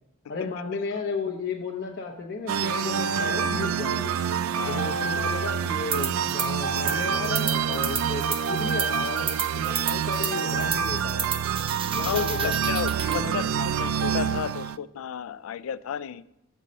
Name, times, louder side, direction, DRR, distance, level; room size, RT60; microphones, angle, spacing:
voice 1, 0.3-4.2 4.7-11.3 11.9-12.5 13.0-13.6, left 4 dB, 45° left, -2 dB, 0.7 m, -34 dB
sound 1, 2.5-14.8, right 7 dB, 75° right, 0.3 m, -27 dB
voice 2, 4.6-5.4 12.0-16.2, left 8 dB, 70° left, 18 dB, 0.3 m, -33 dB
sound 2, 5.9-6.5 6.8-13.2, right 6 dB, 25° right, 0.7 m, -32 dB
7.4 x 5.5 x 5.2 m, 0.86 s
head